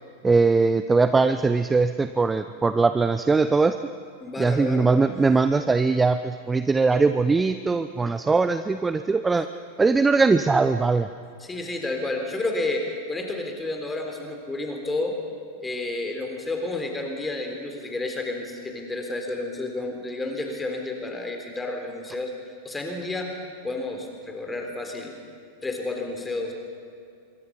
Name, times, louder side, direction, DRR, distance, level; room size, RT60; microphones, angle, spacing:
voice 1, 0.2-3.8 4.4-9.5 9.8-11.1, right 4 dB, 10° right, 12 dB, 0.6 m, -21 dB
voice 2, 4.2-5.0 11.4-15.2 15.6-23.4 23.6-25.2 25.6-26.5, left 2 dB, 10° left, 3 dB, 3.8 m, -31 dB
25.5 x 24.0 x 5.5 m, 2.4 s
figure-of-eight pair, 90°, 0 cm